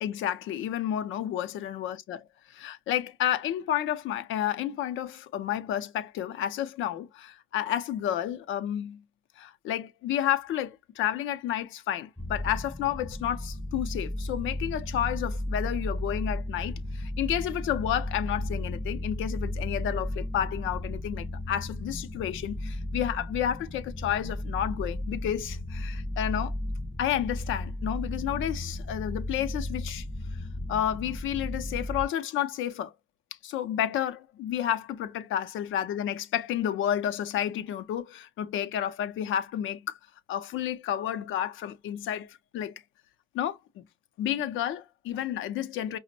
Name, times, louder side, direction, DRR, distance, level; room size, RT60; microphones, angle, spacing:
voice 1, 0.0-9.0 9.4-26.5 27.0-30.1 30.7-32.9 33.4-40.0 40.3-42.7 43.3-43.8 44.2-46.0, left 11 dB, 80° left, 0.5 m, -31 dB
sound 1, 12.2-32.1, left 1 dB, 5° left, 0.5 m, -34 dB
5.0 x 2.0 x 2.6 m
cardioid pair, 90°, 20 cm